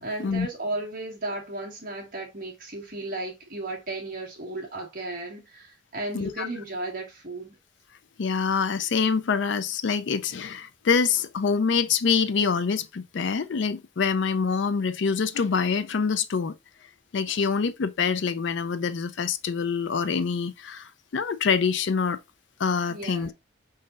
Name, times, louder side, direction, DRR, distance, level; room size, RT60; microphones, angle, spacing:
voice 1, 0.0-7.5 22.9-23.3, right 2 dB, 45° right, 1.6 m, -35 dB
voice 2, 6.1-6.5 8.2-16.5 17.1-22.2 22.6-23.3, left 5 dB, 65° left, 0.4 m, -25 dB
5.1 x 3.9 x 2.4 m
head